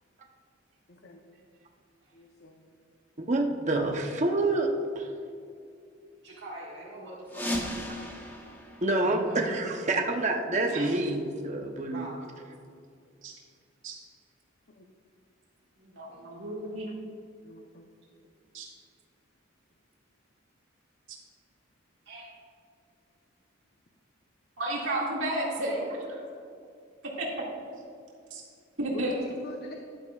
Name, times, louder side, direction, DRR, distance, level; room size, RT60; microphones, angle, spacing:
voice 1, 0.9-1.2 2.1-2.6 14.8-14.9 16.1-17.0 17.4-17.8 26.2-26.3 28.9-29.7, left 2 dB, 55° left, 2 dB, 0.7 m, -45 dB
voice 2, 3.2-5.1 8.8-11.2 11.4-12.1, right 2 dB, 35° right, 2 dB, 0.8 m, -27 dB
voice 3, 6.2-7.6 9.0-9.6 11.9-12.3 22.1-22.3, right 1 dB, 60° right, -8 dB, 1.7 m, -42 dB
sound 1, 7.3-9.9, left 1 dB, 10° left, 1.1 m, -36 dB
voice 4, 10.7-11.0 13.2-13.3 13.8-13.9 15.9-16.9 18.5-18.7 24.6-26.2 27.2-27.3 28.3-28.4 28.8-29.2, right 1 dB, 85° right, -4 dB, 2.1 m, -32 dB
12.5 x 11.5 x 2.4 m, 2.4 s
head